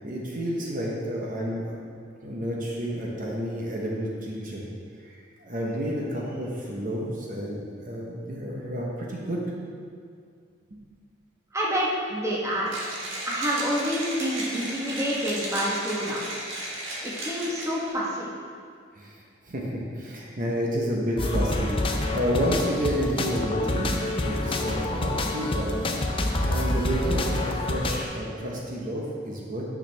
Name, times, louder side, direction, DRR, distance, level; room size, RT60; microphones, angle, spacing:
voice 1, 0.0-1.8 2.2-4.6 5.0-9.4 10.7-10.8 18.9-25.7 26.4-29.6, equal, 45° right, -3 dB, 1.0 m, -30 dB
voice 2, 11.5-12.9 13.3-16.2 17.0-18.3, equal, 15° right, -5 dB, 1.1 m, -28 dB
Mechanisms, 12.7-17.9, right 1 dB, 80° right, 1.7 m, -34 dB
sound 1, 21.2-28.0, left 1 dB, 30° left, 0.6 m, -27 dB
9.2 x 6.2 x 3.4 m, 2.2 s
head